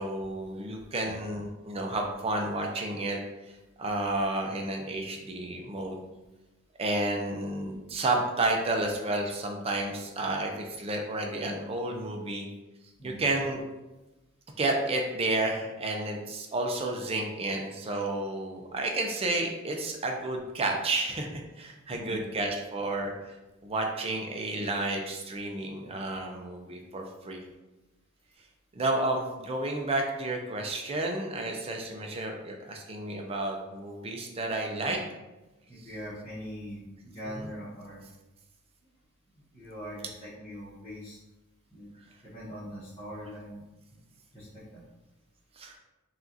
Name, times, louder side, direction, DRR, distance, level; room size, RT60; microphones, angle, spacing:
voice 1, 0.0-3.2 3.8-6.0 6.8-12.5 13.0-13.6 14.6-23.3 23.6-27.4 28.7-35.0 37.4-37.5 45.6-45.8, right 2 dB, 25° right, 2 dB, 0.4 m, -31 dB
voice 2, 21.9-22.2 34.8-34.9 35.7-38.0 39.5-41.2 41.7-41.9 42.2-43.6 43.9-44.0 44.3-44.8, equal, 25° left, -11 dB, 1.1 m, -42 dB
5.6 x 2.5 x 2.6 m, 1.1 s
head